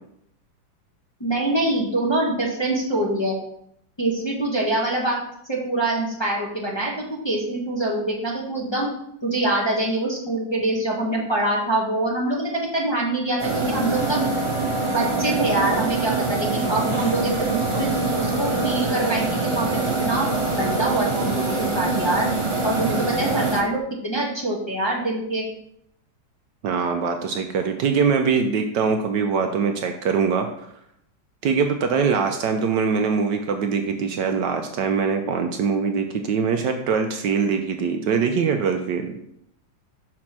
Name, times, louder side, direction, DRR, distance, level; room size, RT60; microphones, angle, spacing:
voice 1, 1.2-3.3 4.0-5.2 5.5-8.9 9.2-14.2 14.8-17.9 18.2-19.7 20.0-20.3 20.6-22.3 22.6-25.4, right 2 dB, 15° left, -4 dB, 1.3 m, -24 dB
sound 1, 13.4-23.6, right 3 dB, 20° right, 0.8 m, -24 dB
voice 2, 26.6-30.5 31.4-39.2, right 5 dB, 70° right, 5 dB, 1.2 m, -23 dB
6.2 x 4.3 x 5.9 m, 0.73 s
omnidirectional pair, 2.1 m